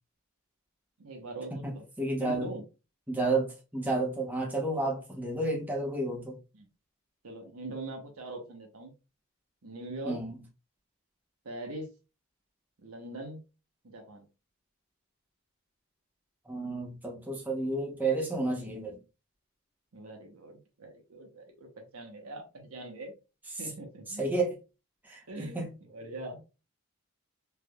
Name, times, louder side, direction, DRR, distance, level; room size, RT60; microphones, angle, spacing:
voice 1, 1.0-1.8 2.2-2.6 6.5-6.7 7.2-8.9 9.6-10.2 11.4-11.9 12.8-13.4 13.8-14.3 19.9-23.2 23.6-24.2 25.3-26.4, right 2 dB, 75° right, 3 dB, 1.0 m, -42 dB
voice 2, 1.6-2.5 3.1-6.4 10.1-10.3 16.5-19.0 24.2-24.5 25.0-25.7, right 2 dB, 10° right, -1 dB, 0.8 m, -31 dB
3.4 x 3.2 x 2.3 m, 0.30 s
head